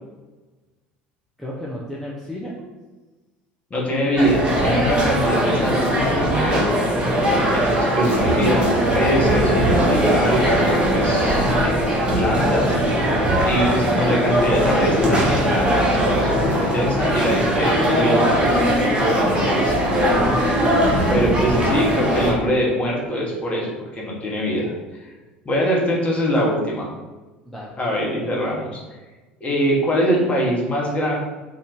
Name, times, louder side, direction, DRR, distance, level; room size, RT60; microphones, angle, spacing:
voice 1, 1.4-2.6 27.5-27.8, equal, ahead, -6 dB, 0.5 m, -35 dB
voice 2, 3.7-7.0 7.5-12.8 13.4-19.8 21.1-24.7 25.0-25.1 25.4-26.9 27.8-28.8 29.4-31.2, equal, 20° left, -4 dB, 1.0 m, -23 dB
sound 1, 4.2-22.3, equal, 15° right, 0.8 m, -19 dB
2.6 x 2.4 x 3.5 m, 1.2 s
figure-of-eight pair, 65°, 6 cm